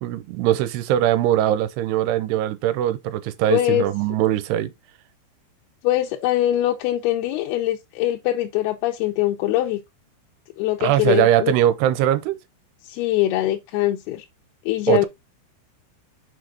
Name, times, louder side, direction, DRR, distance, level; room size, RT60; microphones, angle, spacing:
voice 1, 0.0-4.7 10.8-12.4 14.9-15.1, right 12 dB, 85° right, 2.8 m, -21 dB
voice 2, 3.5-3.9 5.8-9.8 10.6-11.5 12.8-14.2 14.7-15.1, left 14 dB, 80° left, 2.6 m, -22 dB
6.5 x 5.0 x 3.8 m
omnidirectional pair, 4.7 m